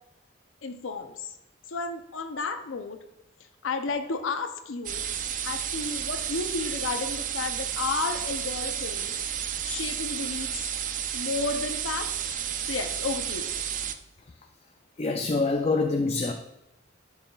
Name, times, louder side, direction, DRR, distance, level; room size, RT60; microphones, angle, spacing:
voice 1, 0.6-1.4 1.7-3.0 3.6-5.0 5.4-9.2 9.6-10.6 11.1-12.1 12.7-13.5, left 4 dB, 85° left, 7 dB, 0.6 m, -32 dB
sound 1, 4.9-14.0, right 9 dB, 40° right, 0.4 m, -32 dB
voice 2, 15.0-16.3, left 3 dB, 30° left, 4 dB, 0.4 m, -25 dB
10.5 x 5.6 x 2.3 m, 0.88 s
head